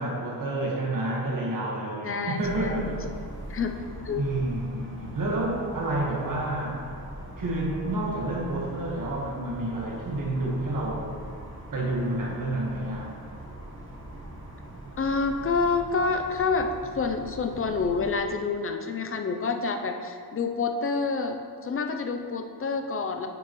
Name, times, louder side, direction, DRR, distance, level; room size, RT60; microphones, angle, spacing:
voice 1, 0.0-3.2 4.1-6.8 7.4-11.2 11.7-13.2, right 1 dB, 45° right, -3 dB, 1.4 m, -29 dB
voice 2, 2.0-3.0 3.5-3.8 4.0-4.2 15.0-23.3, left 4 dB, 30° left, 5 dB, 0.4 m, -28 dB
sound 1, 2.4-18.1, right 1 dB, 30° right, 1.0 m, -41 dB
9.0 x 5.7 x 3.1 m, 2.1 s
wide cardioid pair, 160°, 43 cm